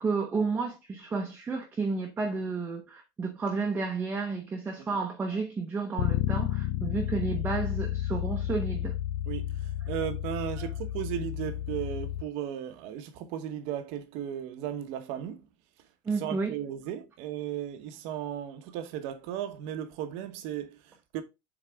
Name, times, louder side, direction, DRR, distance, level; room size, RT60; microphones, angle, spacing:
voice 1, 0.0-8.9 10.6-10.7 16.0-16.6, right 4 dB, 15° right, 0.8 m, -31 dB
Bass guitar, 6.0-12.2, left 13 dB, 65° left, 0.6 m, -31 dB
voice 2, 9.3-15.4 16.2-21.2, right 10 dB, 65° right, 1.0 m, -36 dB
7.3 x 4.0 x 3.4 m
cardioid pair, 175°, 11 cm